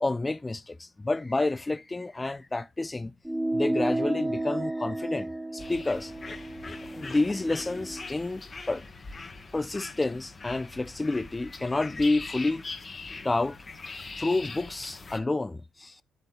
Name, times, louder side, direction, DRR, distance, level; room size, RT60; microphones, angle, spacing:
voice 1, 0.0-3.1 3.5-6.4 6.9-8.9 9.5-12.6 13.2-13.6 14.0-16.0, left 2 dB, 20° left, 0.4 m, -29 dB
sound 1, 3.3-8.1, right 1 dB, 5° right, 0.8 m, -32 dB
sound 2, 5.6-15.2, left 3 dB, 35° left, 1.0 m, -42 dB
10.5 x 7.8 x 2.2 m
cardioid pair, 90°, 0 cm